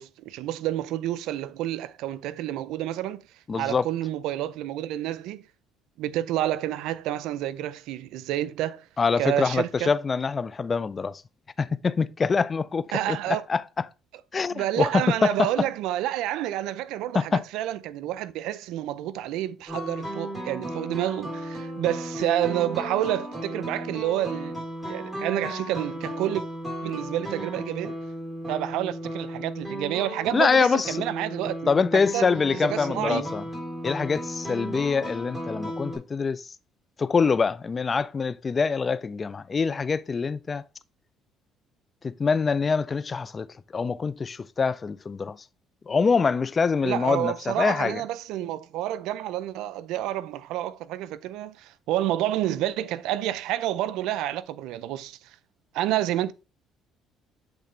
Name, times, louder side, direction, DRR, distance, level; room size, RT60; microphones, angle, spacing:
voice 1, 0.0-3.2 3.5-5.4 6.0-8.8 9.2-9.9 12.9-13.4 14.5-26.4 26.8-28.0 28.5-31.7 32.1-32.2 32.7-33.3 46.8-55.2 55.7-56.3, right 13 dB, 80° right, 0.4 m, -29 dB
voice 2, 3.5-3.9 9.0-11.2 11.6-13.9 14.3-15.5 17.1-17.4 30.3-31.0 31.7-33.4 33.8-36.5 37.0-40.6 42.0-43.5 43.7-45.4 45.9-48.0, left 5 dB, 30° left, 0.4 m, -25 dB
sound 1, 19.7-36.0, equal, 20° right, 3.3 m, -35 dB
8.0 x 3.7 x 3.2 m
cardioid pair, 95°, 0 cm